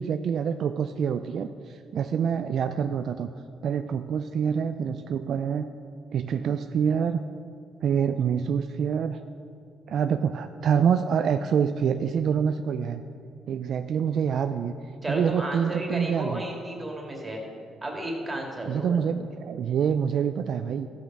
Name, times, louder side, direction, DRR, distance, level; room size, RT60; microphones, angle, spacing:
voice 1, 0.0-3.3 3.6-5.7 6.1-7.2 7.8-9.2 9.9-13.0 13.5-14.7 15.1-16.4 18.7-20.9, right 7 dB, 65° right, 9 dB, 0.3 m, -26 dB
voice 2, 15.0-17.4 17.8-19.0, right 1 dB, 20° right, 0 dB, 2.3 m, -33 dB
14.0 x 5.2 x 6.1 m, 2.4 s
cardioid pair, 90°, 0 cm